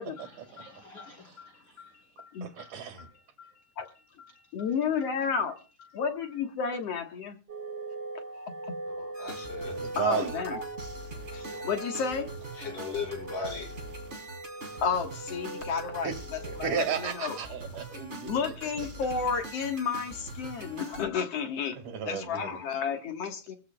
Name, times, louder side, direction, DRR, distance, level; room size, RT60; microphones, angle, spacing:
voice 1, 0.0-6.9, left 5 dB, 30° left, 5.8 m, -54 dB
voice 2, 2.4-3.1 9.7-10.3 16.0-16.2 16.5-18.5 21.8-22.6, right 8 dB, 70° right, 3.4 m, -33 dB
voice 3, 4.5-5.6 5.9-7.4 8.6-8.7 10.0-10.6 11.3-12.3 14.8-16.1 16.6-16.8 17.2-17.4 18.2-21.8 22.1-23.6, left 6 dB, 55° left, 2.2 m, -31 dB
sound 1, 7.5-17.4, right 2 dB, 45° right, 0.8 m, -41 dB
voice 4, 8.9-9.8 11.4-11.7 12.5-13.8, left 5 dB, 70° left, 6.6 m, -38 dB
sound 2, 9.1-21.1, right 2 dB, 20° right, 2.5 m, -43 dB
24.0 x 15.0 x 2.3 m
omnidirectional pair, 3.7 m